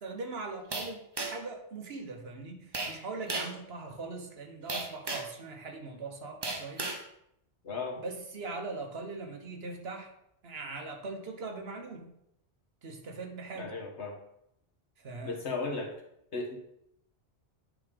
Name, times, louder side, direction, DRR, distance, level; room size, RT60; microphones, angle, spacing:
voice 1, 0.0-6.9 8.0-10.1 10.4-12.1 12.8-13.7 15.0-15.4, right 3 dB, 60° right, 3 dB, 1.2 m, -41 dB
sound 1, 0.7-1.5 2.7-3.0 3.3-3.6 4.7-5.4 6.4-7.0, right 3 dB, 30° right, 0.6 m, -35 dB
voice 2, 7.6-8.0 13.5-14.2 15.2-15.9 16.3-16.6, left 3 dB, 75° left, 0 dB, 1.7 m, -35 dB
9.7 x 3.6 x 5.1 m, 0.78 s
omnidirectional pair, 1.2 m